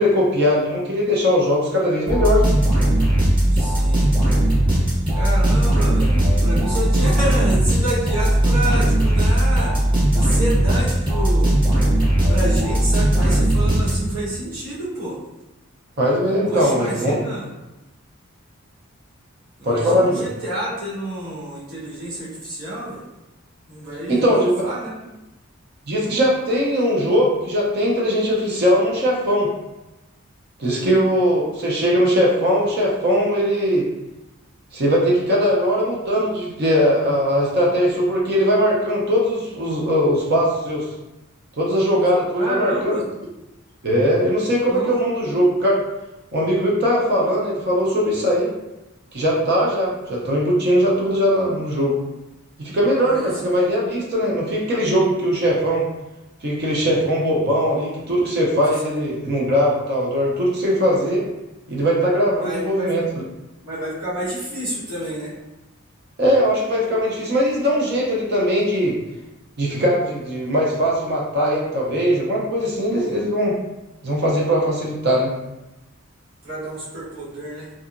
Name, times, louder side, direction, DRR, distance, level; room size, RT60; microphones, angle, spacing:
voice 1, 0.0-2.6 16.0-17.3 19.6-20.2 24.1-24.5 25.9-29.5 30.6-33.9 34.7-40.9 41.6-43.0 43.8-45.8 46.3-48.5 49.1-52.0 52.6-55.8 56.4-61.2 61.7-63.0 66.2-69.0 69.6-73.6 74.0-75.3, equal, 50° right, -3 dB, 0.5 m, -20 dB
sound 1, 2.1-14.3, right 1 dB, 20° right, 0.8 m, -18 dB
voice 2, 3.5-4.1 5.1-9.8 10.1-11.6 12.3-15.2 16.5-17.5 19.6-23.0 23.7-25.0 30.7-31.0 42.4-43.0 44.7-45.0 53.0-53.6 58.8-59.1 62.4-62.9 63.6-65.3 72.9-73.2 76.4-77.7, right 1 dB, 70° right, -9 dB, 1.2 m, -29 dB
2.7 x 2.3 x 2.4 m, 0.99 s
head